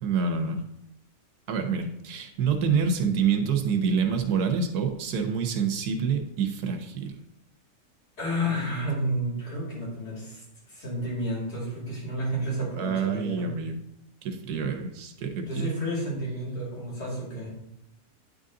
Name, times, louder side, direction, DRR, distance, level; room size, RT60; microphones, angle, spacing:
voice 1, 0.0-0.6 1.5-7.2 8.4-8.7 12.8-13.8 14.2-15.6, right 6 dB, 80° right, 6 dB, 1.3 m, -27 dB
voice 2, 8.2-13.5 15.5-17.5, equal, 85° left, -5 dB, 3.2 m, -31 dB
9.5 x 4.0 x 3.7 m, 0.79 s
omnidirectional pair, 1.6 m